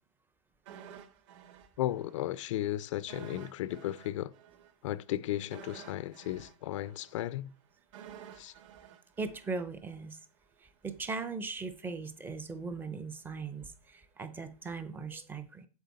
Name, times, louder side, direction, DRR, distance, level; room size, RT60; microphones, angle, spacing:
sound 1, 0.7-2.3 2.6-2.7 3.1-10.2 10.5-10.6, right 9 dB, 50° right, 1.5 m, -52 dB
voice 1, 1.8-4.3 4.8-7.5 8.3-8.5, left 13 dB, 50° left, 0.4 m, -35 dB
voice 2, 9.2-10.2 10.8-15.7, right 4 dB, 10° right, 0.5 m, -39 dB
8.1 x 6.9 x 4.1 m
hypercardioid pair, 150°, 20 cm